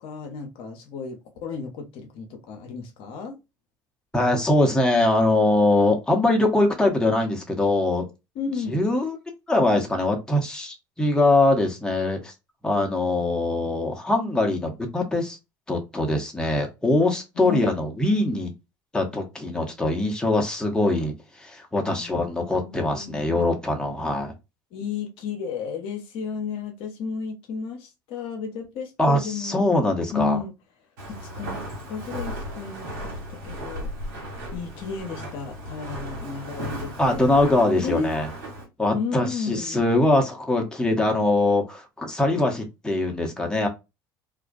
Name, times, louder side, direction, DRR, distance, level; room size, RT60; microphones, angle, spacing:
voice 1, 0.0-3.3 8.4-8.9 17.4-17.7 21.9-23.5 24.7-29.7 30.1-30.5 31.0-33.9 34.5-37.2 37.8-38.1 38.9-39.8, left 5 dB, 60° left, 0.6 m, -33 dB
voice 2, 4.1-8.1 8.7-9.2 9.5-12.3 12.6-15.4 15.7-18.5 18.9-24.3 29.0-30.4 37.0-38.3 38.8-43.7, left 2 dB, 5° left, 0.8 m, -22 dB
Walk footsteps, 31.0-38.7, equal, 80° right, 1.2 m, -36 dB
2.3 x 2.1 x 2.5 m
hypercardioid pair, 75°, 11 cm